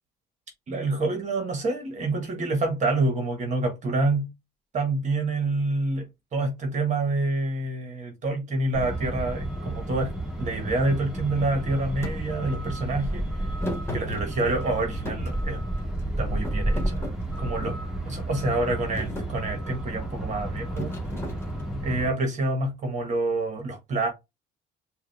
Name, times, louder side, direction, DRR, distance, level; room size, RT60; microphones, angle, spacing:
voice 1, 0.7-4.3 4.7-6.1 6.3-10.1 10.4-13.5 13.9-15.6 16.2-17.8 18.1-21.0 21.8-24.1, right 2 dB, 45° right, 1.5 m, -27 dB
Truck, 8.7-22.1, right 1 dB, 5° right, 2.1 m, -31 dB
Thump thud, 12.0-12.2 13.6-14.7 15.0-16.0 16.4-17.9 18.5-18.7 18.9-19.3 20.8-21.8, left 1 dB, 15° left, 1.7 m, -35 dB
4.9 x 2.5 x 3.4 m
cardioid pair, 110°, 17 cm